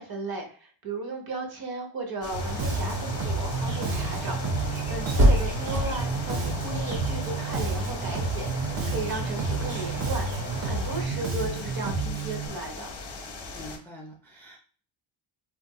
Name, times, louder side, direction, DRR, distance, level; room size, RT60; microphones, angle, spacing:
voice 1, 0.0-12.9, right 2 dB, 50° right, 2 dB, 0.8 m, -35 dB
sound 1, 2.2-13.8, left 4 dB, 55° left, 0.7 m, -40 dB
sound 2, 2.3-11.0, equal, 65° right, 1.3 m, -30 dB
Bass guitar, 2.6-12.5, right 4 dB, 90° right, 0.8 m, -31 dB
voice 2, 5.0-5.5 13.5-14.6, equal, 5° left, -1 dB, 0.4 m, -45 dB
3.8 x 2.4 x 2.2 m, 0.43 s
wide cardioid pair, 170°, 49 cm